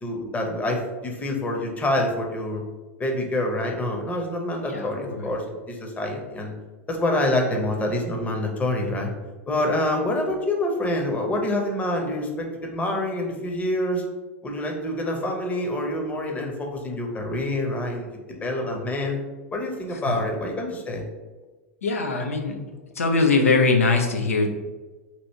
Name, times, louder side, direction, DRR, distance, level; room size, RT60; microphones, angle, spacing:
voice 1, 0.0-2.6 3.0-6.5 6.9-9.1 9.5-14.0 14.4-18.1 18.4-19.2 19.5-21.0, left 1 dB, 20° left, 1 dB, 0.8 m, -26 dB
voice 2, 4.6-5.2 20.1-20.2 21.8-22.6 23.0-24.5, left 3 dB, 85° left, 3 dB, 0.6 m, -22 dB
2.9 x 2.6 x 4.4 m, 1.2 s
hypercardioid pair, 95°, 7 cm